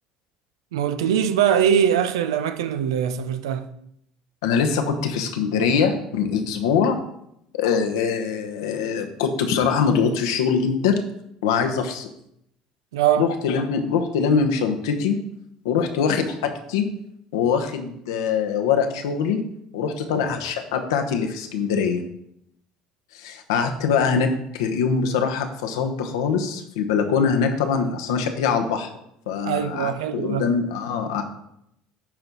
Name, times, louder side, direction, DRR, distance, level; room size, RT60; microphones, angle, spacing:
voice 1, 0.7-3.7 12.9-13.3 29.4-30.5, right 9 dB, 85° right, 0.6 m, -22 dB
voice 2, 4.4-7.0 7.6-11.0 11.4-12.1 13.2-15.2 15.6-16.9 17.3-19.4 19.7-22.0 23.1-28.9 29.3-31.2, left 6 dB, 85° left, 1.0 m, -23 dB
10.5 x 4.5 x 4.1 m
hypercardioid pair, 80°, 2 cm